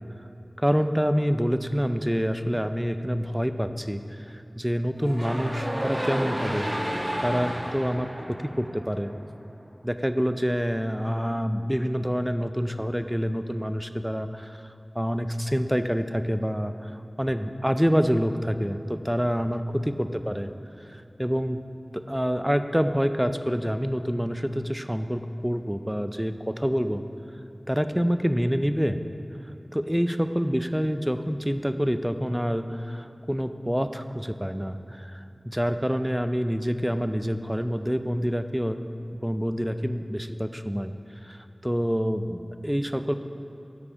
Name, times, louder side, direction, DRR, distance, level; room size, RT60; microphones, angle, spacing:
voice 1, 0.6-9.1 9.8-20.5 20.8-21.6 21.9-27.0 27.7-29.0 29.7-38.8 39.1-40.9 41.2-43.2, equal, 5° right, 9 dB, 0.4 m, -27 dB
sound 1, 5.0-9.2, equal, 25° right, 1.1 m, -31 dB
8.4 x 4.9 x 5.0 m, 2.9 s
wide cardioid pair, 45°, 0 cm